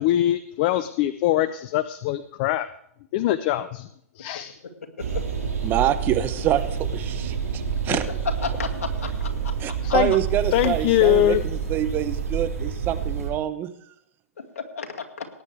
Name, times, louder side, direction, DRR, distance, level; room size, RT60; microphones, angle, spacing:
voice 1, 0.0-2.7 3.1-3.9 4.2-4.6 9.8-10.1 10.5-11.4, left 13 dB, 40° left, 14 dB, 0.6 m, -22 dB
sound 1, 5.0-13.3, right 6 dB, 85° right, 4.7 m, -28 dB
voice 2, 5.6-8.0 9.6-13.7, right 12 dB, 25° right, 11 dB, 0.9 m, -26 dB
voice 3, 8.4-9.5 14.6-15.3, left 5 dB, 70° left, 3 dB, 2.1 m, -33 dB
19.0 x 9.6 x 3.4 m, 0.71 s
hypercardioid pair, 125°, 8 cm